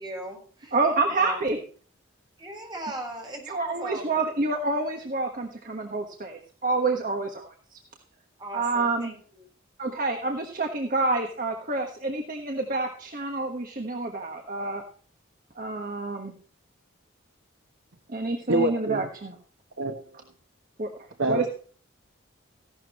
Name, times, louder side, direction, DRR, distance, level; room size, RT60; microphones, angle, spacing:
voice 1, 0.0-0.7 1.1-1.4 2.4-4.2 5.3-5.4 8.4-9.4, right 1 dB, 20° right, 1 dB, 4.6 m, -38 dB
voice 2, 0.7-1.6 3.5-7.8 8.5-9.1 9.8-14.8 15.6-16.3 18.1-19.3 20.8-20.9 21.3-21.5, right 3 dB, 45° right, 3 dB, 1.4 m, -28 dB
voice 3, 18.5-19.1 19.8-19.9 21.2-21.4, right 2 dB, 70° right, 5 dB, 1.2 m, -25 dB
15.5 x 12.0 x 3.1 m, 0.43 s
head